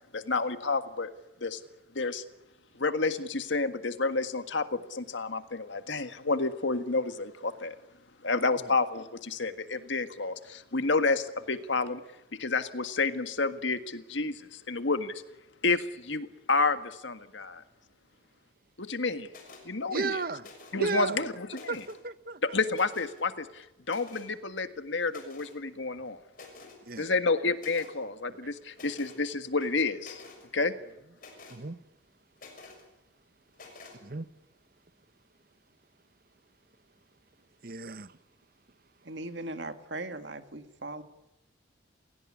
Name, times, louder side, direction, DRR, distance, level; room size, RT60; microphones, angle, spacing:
voice 1, 0.1-1.1 1.4-1.6 1.9-2.2 2.8-7.8 8.2-12.0 12.4-15.2 15.6-17.6 18.8-19.3 19.7-20.2 20.7-21.8 22.5-26.2 27.0-30.2 30.5-30.7, left 3 dB, 75° left, 1.7 m, -30 dB
sound 1, 19.3-19.7 20.4-20.9 21.3-22.0 22.7-23.2 23.9-24.3 25.1-25.6 26.0-26.1 26.3-26.8 27.6-27.9 28.7-29.2 29.6-30.4 31.2-31.6 32.4-32.8 33.5-34.0, left 3 dB, 45° left, 6.7 m, -50 dB
voice 2, 19.9-20.5 20.8-21.3 21.7-22.4 26.8-27.1 28.3-28.5 31.5-31.8 34.0-34.3 37.6-38.1, right 3 dB, 50° right, 0.9 m, -34 dB
voice 3, 39.0-41.0, right 2 dB, 70° right, 2.1 m, -39 dB
28.5 x 17.5 x 10.0 m
head